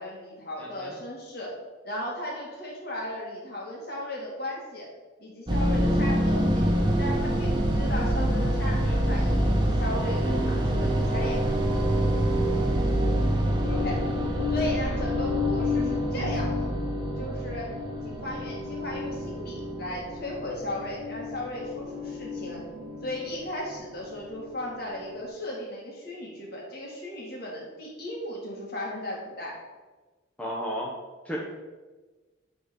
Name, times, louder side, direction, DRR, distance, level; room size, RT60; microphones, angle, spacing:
voice 1, 0.0-1.5 1.8-4.9 5.2-6.7 7.0-11.4 13.7-14.0 14.5-16.7 17.2-17.7 18.0-22.6 23.0-29.6, left 1 dB, 50° left, -2 dB, 2.1 m, -36 dB
voice 2, 0.6-0.9 8.8-9.3 30.4-30.9 31.2-31.4, equal, 5° left, -4 dB, 1.0 m, -34 dB
sound 1, 5.5-23.8, equal, 25° right, 1.0 m, -26 dB
9.4 x 3.9 x 5.3 m, 1.3 s
head